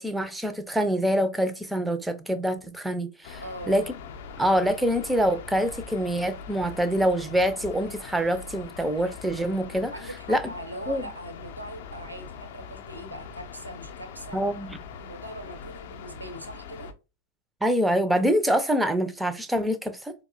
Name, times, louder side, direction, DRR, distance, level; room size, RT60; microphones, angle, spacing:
voice 1, 0.0-3.4 3.7-3.8 4.4-9.9 10.3-10.4 10.9-11.0 14.3-14.8 17.6-20.1, equal, 5° right, 0.4 m, -25 dB
sound 1, 3.2-16.9, left 6 dB, 55° left, 0.5 m, -42 dB
voice 2, 3.4-3.8 9.9-14.4 15.0-16.9, right 1 dB, 90° right, 0.8 m, -41 dB
4.6 x 2.1 x 2.4 m
figure-of-eight pair, 90°, 0 cm